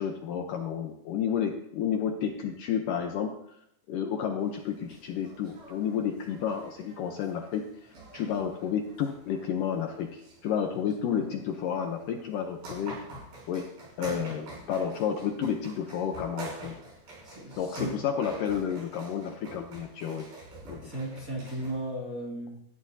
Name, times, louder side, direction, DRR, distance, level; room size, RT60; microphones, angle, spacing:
voice 1, 0.0-3.6 3.9-13.0 13.5-16.8 17.6-20.3 20.7-20.9, left 8 dB, 75° left, 4 dB, 2.1 m, -31 dB
sound 1, 4.4-21.9, right 2 dB, 60° right, 7.7 m, -47 dB
voice 2, 17.2-18.0 20.8-22.6, right 1 dB, 25° right, -3 dB, 2.3 m, -36 dB
18.0 x 13.5 x 2.8 m, 0.76 s
omnidirectional pair, 4.5 m